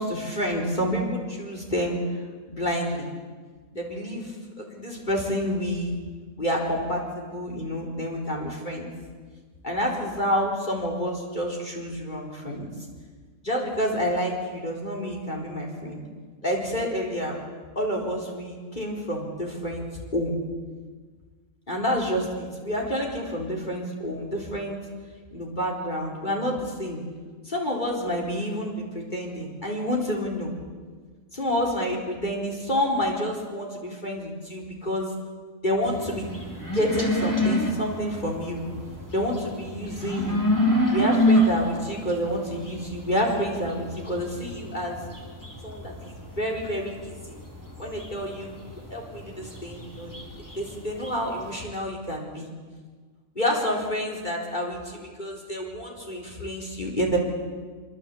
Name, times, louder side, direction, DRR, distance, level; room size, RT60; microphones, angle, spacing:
voice 1, 0.0-3.1 3.7-6.0 6.4-8.9 9.6-12.7 13.4-16.0 16.4-17.4 17.8-19.8 20.1-20.3 21.7-24.8 25.3-27.0 27.4-30.5 31.3-35.1 35.6-36.3 36.7-38.6 39.1-40.4 40.9-45.0 45.6-45.9 46.4-47.1 47.8-48.5 48.9-50.1 50.6-52.5 53.4-57.2, equal, 35° left, 0 dB, 4.5 m, -28 dB
sound 1, 35.8-51.5, equal, 15° left, 4.5 m, -28 dB
25.0 x 24.5 x 8.5 m, 1.5 s
omnidirectional pair, 1.4 m